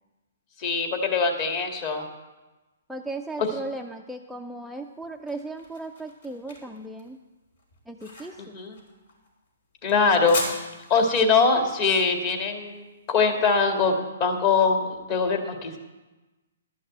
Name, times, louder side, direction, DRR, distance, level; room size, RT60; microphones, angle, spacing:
voice 1, 0.6-2.0 8.4-8.8 9.8-10.4 10.9-15.8, left 4 dB, 35° left, 3 dB, 1.9 m, -23 dB
voice 2, 2.9-7.2 7.9-8.6, right 2 dB, ahead, 4 dB, 0.5 m, -36 dB
sound 1, 4.8-13.8, left 2 dB, 75° left, 4.4 m, -40 dB
12.0 x 6.4 x 8.1 m, 1.1 s
hypercardioid pair, 140°, 0 cm